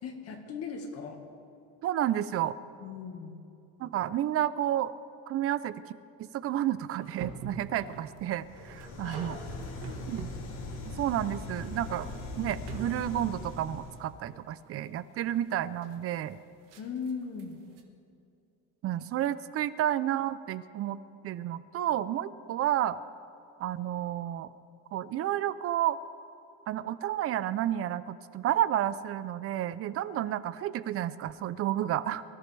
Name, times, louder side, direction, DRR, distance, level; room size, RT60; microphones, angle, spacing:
voice 1, 0.0-1.2 2.8-3.4 9.0-10.1 16.8-17.6, left 5 dB, 50° left, 3 dB, 1.8 m, -39 dB
voice 2, 1.8-2.6 3.8-4.9 5.3-5.8 6.2-9.4 10.1-10.3 10.9-16.4 18.8-21.0 21.2-23.0 23.6-24.5 24.9-26.0 26.7-32.2, right 12 dB, 45° right, 15 dB, 0.6 m, -31 dB
sound 1, 7.0-17.8, right 5 dB, 75° right, 1.7 m, -47 dB
sound 2, 8.4-14.1, left 2 dB, 70° left, 3.3 m, -40 dB
24.0 x 14.5 x 3.4 m, 2.6 s
cardioid pair, 145°, 32 cm